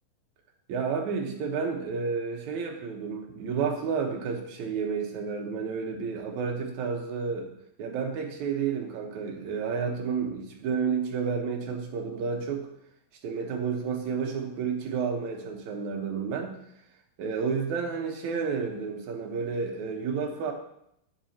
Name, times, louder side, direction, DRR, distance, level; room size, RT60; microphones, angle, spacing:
voice 1, 0.7-7.5 7.8-12.7 13.2-16.5 17.2-20.5, right 5 dB, 65° right, 2 dB, 2.3 m, -31 dB
11.5 x 7.6 x 2.9 m, 0.75 s
omnidirectional pair, 4.1 m